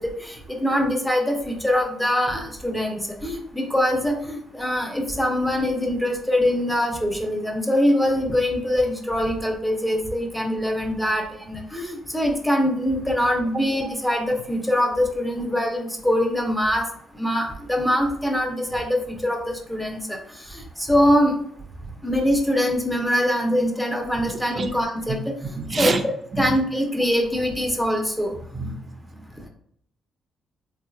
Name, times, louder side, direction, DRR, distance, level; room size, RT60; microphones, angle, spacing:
voice 1, 0.2-16.8 17.2-20.2 20.5-21.3 22.0-25.2 25.8-26.0 26.4-28.3, equal, 5° left, 1 dB, 0.8 m, -23 dB
voice 2, 25.5-26.0 26.3-26.5 28.5-29.3, right 4 dB, 40° right, 7 dB, 0.4 m, -27 dB
3.7 x 2.7 x 2.3 m, 0.66 s
cardioid pair, 90°, 0 cm